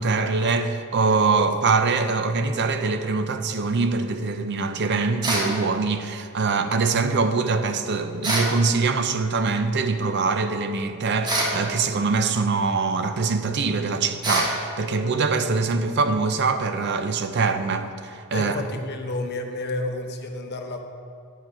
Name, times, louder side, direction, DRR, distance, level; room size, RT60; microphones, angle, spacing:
voice 1, 0.0-18.6, right 4 dB, 50° right, 0.5 m, -23 dB
sound 1, 5.2-5.5 8.2-8.5 11.2-11.6 14.2-14.5, right 2 dB, 20° right, 1.1 m, -24 dB
voice 2, 18.3-20.8, left 2 dB, 50° left, 0.7 m, -30 dB
9.0 x 4.8 x 5.6 m
head